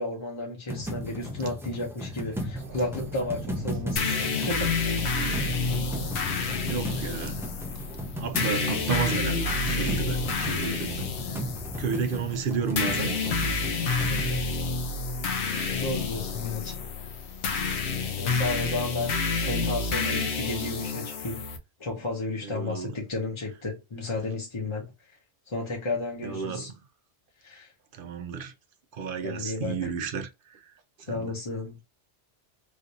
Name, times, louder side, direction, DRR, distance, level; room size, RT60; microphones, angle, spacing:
voice 1, 0.0-5.0 14.1-14.4 15.7-16.8 18.2-21.4 21.8-25.2 25.5-26.7 27.4-27.7 29.2-29.9 31.1-31.8, left 2 dB, 30° left, 0.8 m, -33 dB
sound 1, 0.7-14.2, equal, 5° right, 0.4 m, -36 dB
Subway metro underground, 2.6-10.6, right 4 dB, 90° right, 1.0 m, -44 dB
sound 2, 4.0-21.6, left 4 dB, 75° left, 0.9 m, -29 dB
voice 2, 6.7-7.5 8.2-11.1 11.8-13.2 15.5-15.8 22.4-22.9 26.2-26.7 27.9-28.5 28.9-30.7 31.0-31.3, right 6 dB, 60° right, 0.7 m, -32 dB
3.3 x 2.6 x 2.7 m
omnidirectional pair, 1.2 m